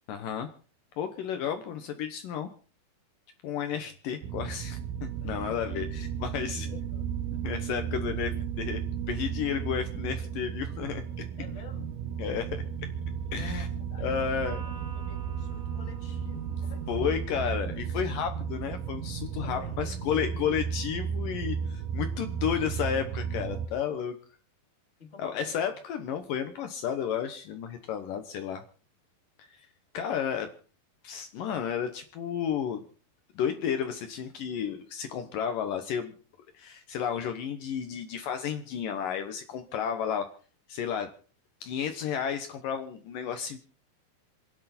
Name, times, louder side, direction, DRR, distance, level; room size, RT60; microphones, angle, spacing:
voice 1, 0.1-0.5 1.0-2.5 3.4-6.7 7.4-8.8 9.1-11.1 12.2-12.6 13.3-13.7 14.0-14.6 16.9-24.2 25.2-28.6 29.4-29.5 29.9-30.5 31.0-32.8 33.4-36.1 36.5-40.3 40.7-41.1 41.6-43.6, left 8 dB, 70° left, 8 dB, 2.6 m, -32 dB
sound 1, 4.2-23.7, right 7 dB, 85° right, 3.3 m, -34 dB
voice 2, 5.2-5.7 6.5-7.5 11.4-12.0 13.3-17.7 19.4-20.2 25.0-25.6, left 5 dB, 20° left, 2 dB, 2.7 m, -48 dB
Electric guitar, 14.4-18.0, right 6 dB, 65° right, 5.1 m, -49 dB
27.5 x 10.5 x 4.3 m, 0.40 s
omnidirectional pair, 4.3 m